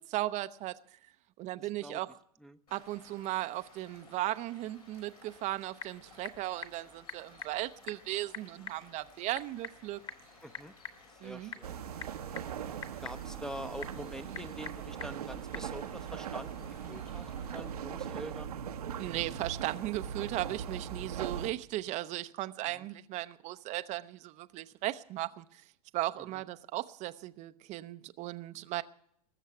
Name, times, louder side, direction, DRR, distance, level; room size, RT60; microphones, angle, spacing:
voice 1, 0.1-0.8 1.4-2.1 2.7-10.0 11.2-11.5 19.0-25.6 25.9-28.8, right 16 dB, 35° right, 0.6 m, -36 dB
sound 1, 2.7-17.7, left 3 dB, 85° left, 7.1 m, -59 dB
Typing / Telephone, 5.2-15.7, left 6 dB, 25° left, 1.6 m, -48 dB
voice 2, 10.4-10.7 11.1-11.8 13.0-18.5 22.6-22.9 26.2-26.4, equal, 5° left, 0.7 m, -45 dB
sound 2, 11.6-21.5, right 8 dB, 75° right, 0.9 m, -40 dB
20.0 x 7.4 x 8.1 m
hypercardioid pair, 95°, 20 cm